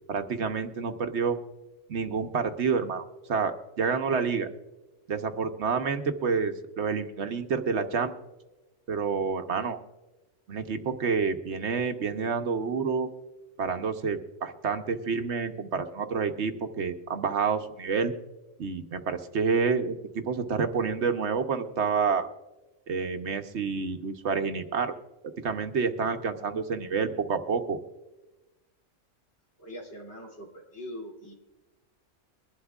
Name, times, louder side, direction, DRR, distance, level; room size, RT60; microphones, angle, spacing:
voice 1, 0.1-1.4 1.9-4.5 5.1-8.1 8.9-9.8 10.5-13.1 13.6-18.1 18.6-22.3 22.9-24.9 25.4-27.8, right 5 dB, 65° right, 6 dB, 1.1 m, -28 dB
voice 2, 29.6-31.3, equal, 60° left, -1 dB, 3.1 m, -42 dB
23.0 x 11.5 x 2.4 m, 1.1 s
omnidirectional pair, 1.3 m